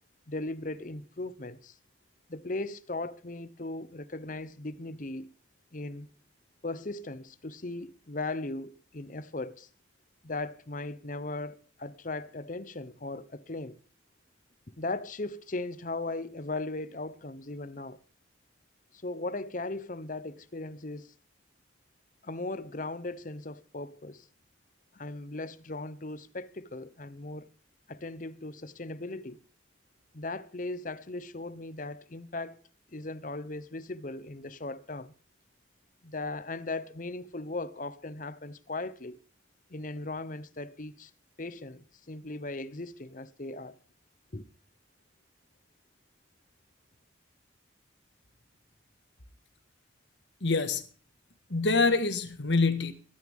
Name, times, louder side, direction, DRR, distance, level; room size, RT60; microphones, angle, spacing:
voice 1, 0.3-1.8 2.3-5.3 5.7-6.1 6.6-9.7 10.2-13.8 14.8-18.0 18.9-21.1 22.2-24.3 24.9-27.5 27.9-29.4 30.1-32.6 32.9-35.1 36.0-39.2 39.7-41.1 41.4-43.8 44.3-44.4, left 2 dB, 40° left, 0.9 m, -38 dB
voice 2, 50.4-50.8 51.5-52.9, left 3 dB, 65° left, 1.7 m, -25 dB
23.0 x 9.5 x 3.6 m
head